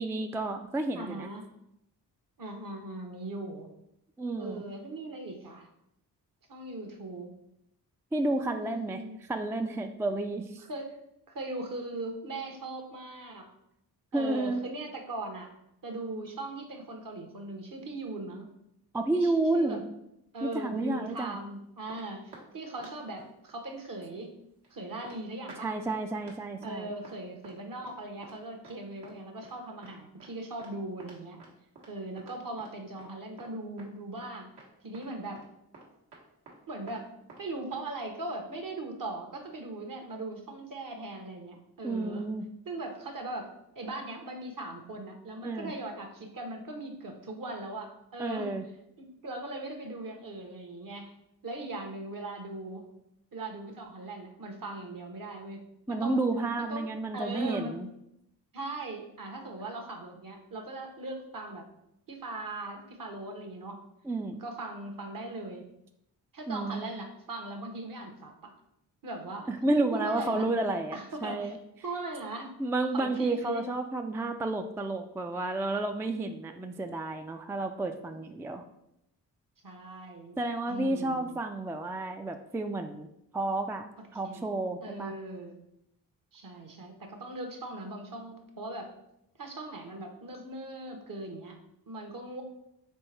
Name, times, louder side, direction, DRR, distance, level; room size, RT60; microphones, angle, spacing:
voice 1, 0.0-1.3 4.2-4.6 8.1-10.6 14.1-14.6 18.9-19.8 20.4-21.4 25.6-26.9 41.8-42.5 45.4-45.7 48.2-48.7 55.9-57.9 64.1-64.4 66.5-66.9 69.5-71.6 72.6-78.7 80.4-83.1 83.3-83.9 84.1-85.1, right 2 dB, 5° right, 6 dB, 0.3 m, -31 dB
voice 2, 0.9-1.5 2.4-3.7 4.4-5.7 6.5-7.3 8.6-9.2 10.6-10.9 11.3-13.5 14.1-15.5 15.8-18.5 19.1-19.8 20.3-24.3 24.7-25.7 26.6-31.4 31.9-34.5 34.8-35.4 36.7-37.1 37.4-42.2 42.6-43.5 43.7-48.5 49.0-51.1 51.4-52.9 53.3-56.2 56.6-57.8 58.5-61.6 62.1-63.8 64.4-65.6 66.3-68.5 69.0-69.5 69.9-70.5 70.9-71.6 71.8-72.5 72.9-73.6 78.1-78.2 79.6-80.4 80.7-81.3 84.2-84.5 84.8-85.5 86.3-88.9 89.4-91.6 91.9-92.4, right 2 dB, 50° right, 4 dB, 1.1 m, -39 dB
sound 1, 20.9-21.4 21.9-22.5 22.8-23.5 24.0-24.2 24.6-24.7 25.0-25.2 25.5-26.0 26.3-26.8 27.0-27.2 27.4-28.0 28.2-28.4 28.6-28.8 29.0-29.2 29.4-29.6 29.8-29.9 30.2-30.3 30.6-30.7 31.0-32.7 33.0-33.1 33.4-33.9 34.2-34.3 34.6-34.7 34.9-35.1 35.4-35.5 35.7-36.6 36.9-37.0 37.3-37.5 37.7-37.8, right 3 dB, 70° right, 1.4 m, -51 dB
4.4 x 3.4 x 3.3 m, 0.80 s
supercardioid pair, 45°, 41 cm